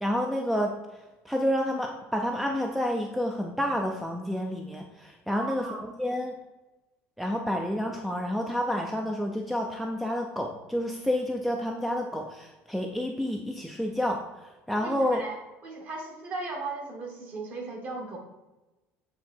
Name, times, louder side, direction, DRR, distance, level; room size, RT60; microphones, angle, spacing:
voice 1, 0.0-0.7 1.3-6.3 7.2-14.2 14.7-15.2, equal, ahead, 2 dB, 0.5 m, -29 dB
voice 2, 5.3-5.8 14.8-15.4 15.6-18.2, right 3 dB, 40° right, 2 dB, 1.6 m, -37 dB
8.1 x 3.7 x 4.3 m, 1.1 s
cardioid pair, 160°, 5 cm